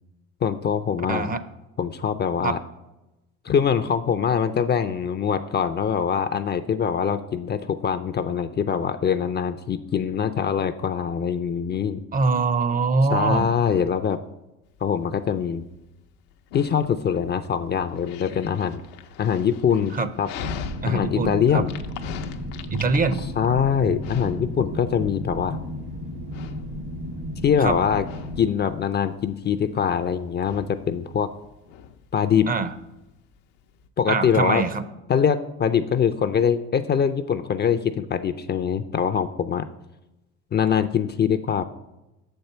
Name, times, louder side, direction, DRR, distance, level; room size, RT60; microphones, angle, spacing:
voice 1, 0.4-1.3 1.8-2.6 3.4-12.0 13.1-14.2 14.8-15.6 16.5-18.8 19.2-20.3 20.8-21.7 23.4-25.6 27.4-28.1 28.4-31.3 32.1-32.5 34.0-34.6 35.1-39.7 40.5-41.6, left 7 dB, 30° left, 11 dB, 0.4 m, -23 dB
voice 2, 1.1-1.4 2.4-2.5 12.1-13.5 19.9-20.1 20.8-21.6 22.7-23.3 23.9-24.0 27.6-27.8 32.5-32.7 34.1-34.8, right 4 dB, 25° right, 13 dB, 0.5 m, -23 dB
Dog, 14.7-33.9, left 7 dB, 85° left, 0.7 m, -42 dB
sound 1, 20.4-28.4, equal, 80° right, 2.2 m, -34 dB
6.5 x 4.5 x 6.6 m, 0.98 s
supercardioid pair, 80°, 33 cm